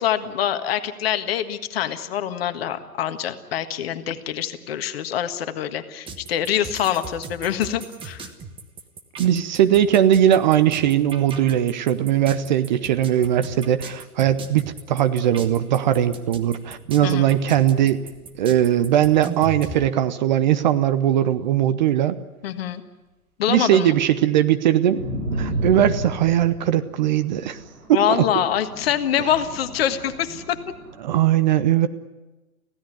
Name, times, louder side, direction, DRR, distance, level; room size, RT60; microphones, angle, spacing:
voice 1, 0.0-8.3 17.0-17.3 22.4-22.8 23.4-24.0 27.9-30.6, left 10 dB, 45° left, 9 dB, 1.6 m, -25 dB
sound 1, 6.1-19.8, right 4 dB, 10° right, 1.3 m, -38 dB
voice 2, 9.2-18.0 18.4-22.2 23.5-25.0 25.4-27.6 27.9-28.2 31.0-31.9, right 11 dB, 30° right, 12 dB, 0.8 m, -19 dB
sound 2, 16.2-18.6 19.9-20.0 20.3-20.9 24.8-30.9, right 1 dB, 60° right, 6.5 m, -34 dB
25.5 x 16.5 x 9.4 m, 1.1 s
figure-of-eight pair, 120°, 43 cm